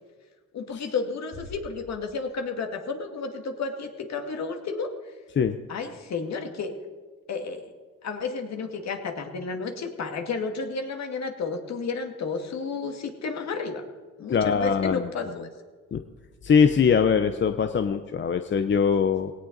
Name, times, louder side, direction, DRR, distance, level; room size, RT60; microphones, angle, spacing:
voice 1, 0.5-4.9 5.7-6.7 7.3-7.7 8.0-13.8 14.2-15.5, left 4 dB, 60° left, 4 dB, 2.2 m, -32 dB
sound 1, 1.3-3.3, left 2 dB, 85° left, 5.9 m, -47 dB
voice 2, 14.3-15.1 15.9-16.0 16.4-19.3, left 6 dB, 40° left, 8 dB, 0.8 m, -22 dB
17.5 x 17.5 x 4.0 m, 1.4 s
cardioid pair, 90°, 30 cm